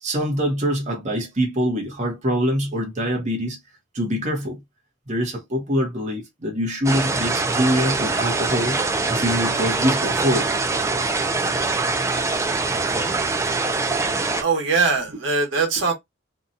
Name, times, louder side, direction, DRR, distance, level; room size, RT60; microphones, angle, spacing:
voice 1, 0.0-3.6 3.9-4.6 5.1-8.8 9.1-10.5 12.4-12.5 14.3-14.4, equal, 40° right, 0.9 m, -24 dB
sound 1, 6.8-14.4, right 3 dB, 15° right, 0.3 m, -23 dB
voice 2, 14.4-15.9, right 4 dB, 80° right, 1.1 m, -21 dB
2.7 x 2.3 x 2.6 m
head